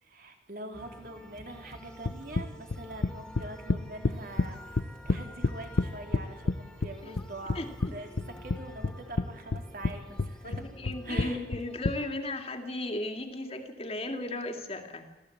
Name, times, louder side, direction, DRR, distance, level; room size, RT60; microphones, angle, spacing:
voice 1, 0.0-7.6 7.9-10.7 11.0-11.4, right 2 dB, 50° right, 4 dB, 3.4 m, -44 dB
sound 1, 0.7-12.1, equal, 5° left, 2.2 m, -49 dB
sound 2, 2.0-4.5 4.8-6.6 6.8-7.9 8.2-9.3 9.5-9.9 10.2-11.9, left 3 dB, 80° left, 0.8 m, -28 dB
voice 2, 7.5-8.0 10.4-15.1, left 2 dB, 35° left, 5 dB, 2.5 m, -36 dB
27.0 x 15.0 x 8.6 m, 1.1 s
head